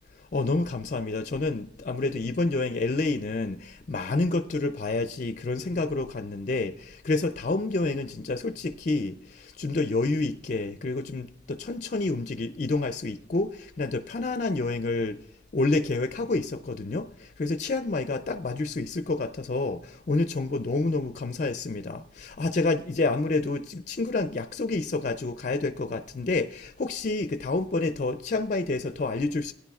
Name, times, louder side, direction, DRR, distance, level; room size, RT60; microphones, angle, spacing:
voice 1, 0.3-15.2 15.5-29.5, left 3 dB, 40° left, 0.4 m, -28 dB
17.0 x 9.8 x 2.4 m
head